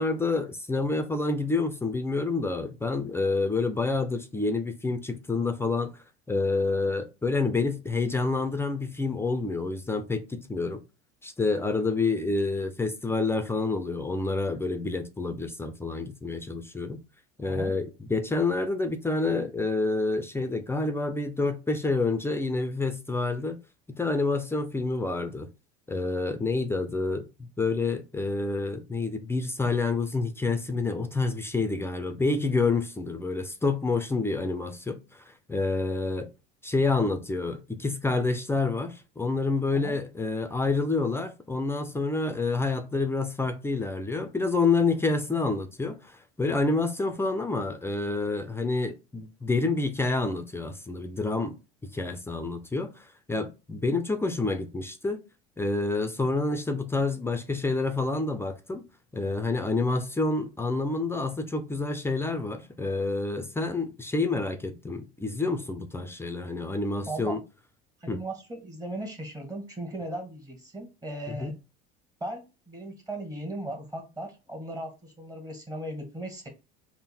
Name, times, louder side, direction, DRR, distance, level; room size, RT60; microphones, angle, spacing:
voice 1, 0.0-5.9 6.3-10.8 11.2-17.0 17.4-23.6 23.9-25.5 25.9-27.3 27.6-36.3 36.6-51.6 51.8-55.2 55.6-58.8 59.1-67.4 68.1-68.2 71.3-71.5, left 3 dB, 10° left, 0.5 m, -28 dB
voice 2, 17.4-17.8 39.7-40.0 67.1-67.3 68.0-71.5 72.2-76.5, right 1 dB, 15° right, 1.3 m, -37 dB
3.7 x 2.1 x 4.2 m
supercardioid pair, 100°, 21 cm